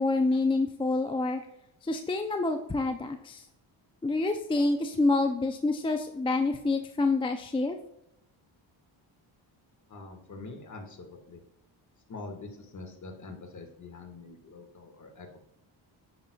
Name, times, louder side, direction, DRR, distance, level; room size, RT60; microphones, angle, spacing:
voice 1, 0.0-1.4 1.8-3.4 4.0-7.8, left 3 dB, 15° left, 6 dB, 0.3 m, -27 dB
voice 2, 9.9-11.4 12.1-15.4, left 3 dB, 35° left, 4 dB, 1.5 m, -44 dB
8.6 x 6.1 x 2.2 m, 0.81 s
cardioid pair, 95°, 48 cm